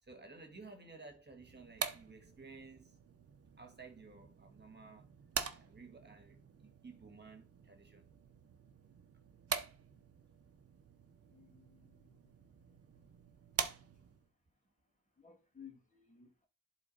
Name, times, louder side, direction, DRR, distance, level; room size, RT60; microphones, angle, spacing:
voice 1, 0.0-3.0 3.6-5.1 5.5-8.0, right 4 dB, 35° right, 1.8 m, -55 dB
sound 1, 1.4-14.3, right 6 dB, 50° right, 1.0 m, -45 dB
voice 2, 11.3-12.3 15.2-16.5, left 7 dB, 25° left, 2.3 m, -58 dB
11.0 x 4.1 x 4.1 m
wide cardioid pair, 100°, 30 cm